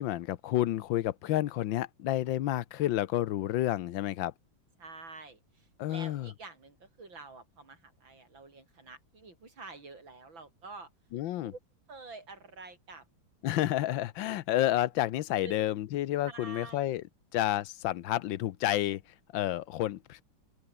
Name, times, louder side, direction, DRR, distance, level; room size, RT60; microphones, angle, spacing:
voice 1, 0.0-4.3 5.8-6.3 11.1-11.5 13.4-17.0 17.3-19.0 19.3-20.2, left 14 dB, 85° left, 1.5 m, -30 dB
voice 2, 4.8-10.9 11.4-11.6 11.9-13.1 15.4-15.6 16.3-17.0, right 3 dB, 90° right, 5.5 m, -48 dB
open air
omnidirectional pair, 2.0 m